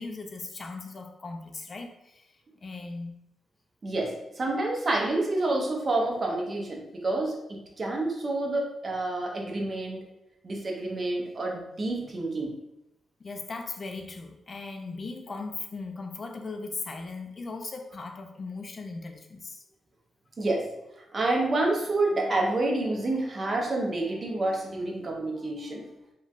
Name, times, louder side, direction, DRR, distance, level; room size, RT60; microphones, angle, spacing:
voice 1, 0.0-3.1 13.2-19.6, left 3 dB, 40° left, 4 dB, 0.3 m, -38 dB
voice 2, 3.8-10.0 10.4-12.5 20.4-20.7 21.1-25.8, right 2 dB, 40° right, -1 dB, 0.6 m, -28 dB
3.0 x 2.2 x 2.5 m, 0.87 s
cardioid pair, 95°, 0 cm